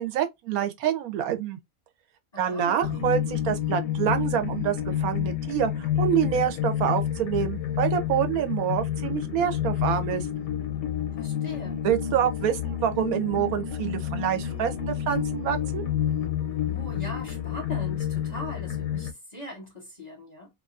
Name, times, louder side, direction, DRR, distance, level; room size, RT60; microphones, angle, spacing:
voice 1, 0.0-1.6 2.4-10.3 11.8-15.8, right 9 dB, 85° right, 1.1 m, -27 dB
voice 2, 2.3-2.9 11.2-11.8 16.7-20.5, left 1 dB, 40° left, 0.6 m, -40 dB
sound 1, 2.8-19.1, left 10 dB, 75° left, 1.0 m, -29 dB
2.5 x 2.4 x 2.4 m
omnidirectional pair, 1.5 m